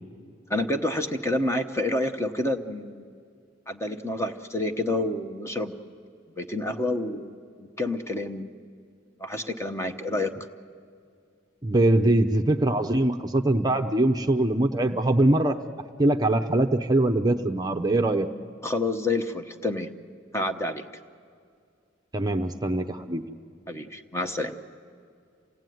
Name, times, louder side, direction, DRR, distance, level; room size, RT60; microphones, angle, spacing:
voice 1, 0.5-3.1 3.7-5.7 6.4-8.5 9.2-10.3 18.6-19.9 20.3-20.9 23.7-24.5, left 2 dB, 15° left, 7 dB, 0.9 m, -28 dB
voice 2, 11.6-15.6 16.0-18.3 22.1-23.2, right 1 dB, 20° right, 5 dB, 0.7 m, -22 dB
27.5 x 17.0 x 9.3 m, 2.3 s
head